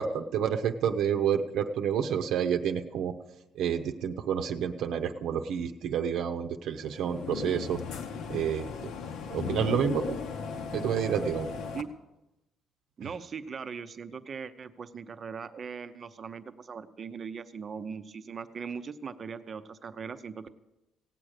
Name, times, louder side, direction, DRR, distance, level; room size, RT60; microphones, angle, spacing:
voice 1, 0.0-3.1 3.6-7.8 8.3-8.9 9.3-10.2 10.7-11.5, right 8 dB, 65° right, 6 dB, 0.7 m, -29 dB
sound 1, 6.8-11.8, left 6 dB, 65° left, 1.0 m, -37 dB
voice 2, 13.0-20.5, right 6 dB, 30° right, 11 dB, 0.6 m, -40 dB
16.5 x 8.9 x 6.5 m, 0.97 s
cardioid pair, 170°, 0 cm